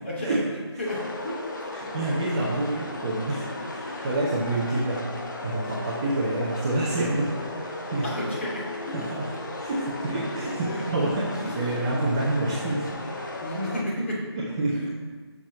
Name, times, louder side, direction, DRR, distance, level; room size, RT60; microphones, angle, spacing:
voice 1, 0.0-0.4 0.8-1.4 8.0-9.1 10.7-10.8 13.4-14.2 14.7-14.9, left 1 dB, 30° left, -4 dB, 2.6 m, -32 dB
sound 1, 0.9-13.8, left 2 dB, 45° left, 1.2 m, -35 dB
voice 2, 1.7-5.0 5.4-8.1 8.9-12.9 13.2-13.3 14.4-14.9, right 2 dB, 15° right, -6 dB, 1.0 m, -28 dB
12.0 x 6.4 x 4.9 m, 1.4 s
figure-of-eight pair, 165°, 14 cm